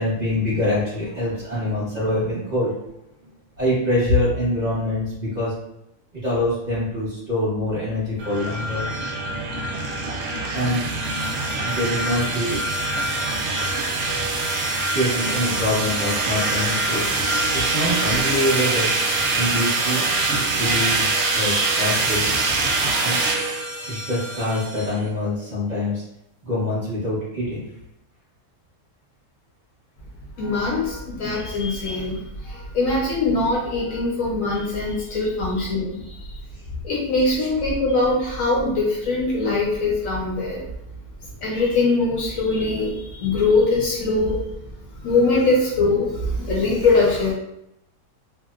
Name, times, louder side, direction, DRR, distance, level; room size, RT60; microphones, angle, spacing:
voice 1, 0.0-2.7 3.6-5.5 6.2-9.0 10.5-10.9 11.6-12.6 14.9-17.0 17.5-18.9 19.3-20.1 20.6-22.4 23.0-23.3 23.9-26.0 26.4-27.6, left 1 dB, 35° right, -10 dB, 0.9 m, -24 dB
sound 1, 8.2-25.0, right 3 dB, 70° right, 0.9 m, -24 dB
voice 2, 30.4-36.0 36.8-40.7 41.4-44.4 45.0-47.3, left 3 dB, 70° left, -3 dB, 0.9 m, -22 dB
2.8 x 2.0 x 2.3 m, 0.83 s
omnidirectional pair, 1.6 m